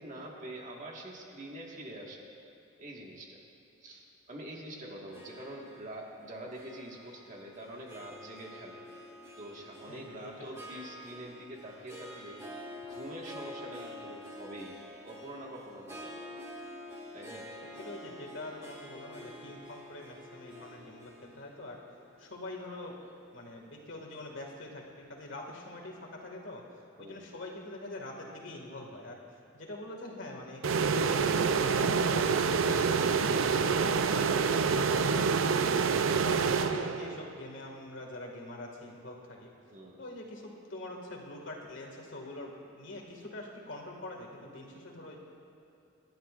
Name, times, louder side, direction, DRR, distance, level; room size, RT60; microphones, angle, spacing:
voice 1, 0.0-2.3 2.8-3.4 3.8-8.8 9.4-14.8 15.0-16.1 17.1-17.5 27.0-27.3 39.7-40.0, right 1 dB, 40° right, -2 dB, 1.7 m, -45 dB
Harp, 5.1-23.5, left 1 dB, 15° right, 1.5 m, -48 dB
voice 2, 9.9-10.3 17.8-21.8 22.2-22.9 23.3-26.6 27.0-29.2 29.5-30.6 30.9-32.8 33.3-35.1 35.6-39.5 40.0-45.2, left 2 dB, 70° left, 0 dB, 2.1 m, -44 dB
sound 1, 30.6-37.3, right 5 dB, 85° right, 0.5 m, -27 dB
26.5 x 11.5 x 2.5 m, 2.8 s
head